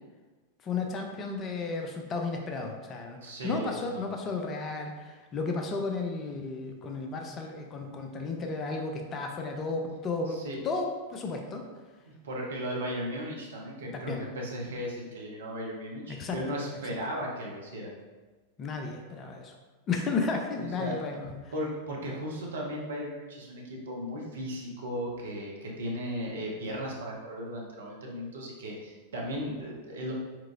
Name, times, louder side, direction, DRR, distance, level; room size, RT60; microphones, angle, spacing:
voice 1, 0.6-10.4 10.6-11.6 13.9-14.2 16.1-16.4 18.6-19.5 19.9-21.5, left 3 dB, 25° left, 3 dB, 0.6 m, -33 dB
voice 2, 3.2-4.0 7.7-7.8 10.3-10.6 12.1-17.9 20.6-20.9 21.5-30.1, equal, 65° right, -2 dB, 1.0 m, -36 dB
4.7 x 4.4 x 2.5 m, 1.3 s
figure-of-eight pair, 90°, 0 cm